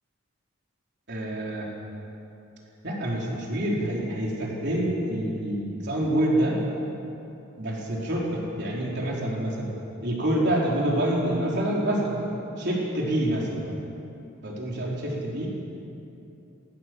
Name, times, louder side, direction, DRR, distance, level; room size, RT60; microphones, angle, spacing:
voice 1, 1.1-1.7 2.8-6.6 7.6-9.7 10.0-12.2 12.6-13.6 14.4-15.5, right 1 dB, 50° right, -3 dB, 4.0 m, -27 dB
18.5 x 18.5 x 7.7 m, 2.8 s
head